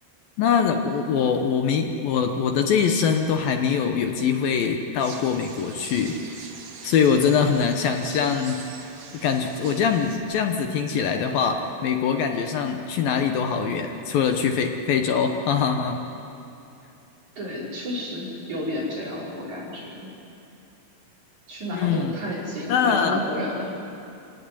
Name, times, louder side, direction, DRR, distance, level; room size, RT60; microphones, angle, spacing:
voice 1, 0.4-6.5 6.8-8.7 9.1-16.0 21.7-22.1 22.7-23.2, left 6 dB, 70° left, 5 dB, 2.7 m, -23 dB
sound 1, 5.0-10.2, right 5 dB, 90° right, 4.3 m, -43 dB
voice 2, 17.4-20.2 21.5-23.8, left 1 dB, 45° right, -5 dB, 6.4 m, -31 dB
27.0 x 17.5 x 9.8 m, 2.7 s
omnidirectional pair, 4.6 m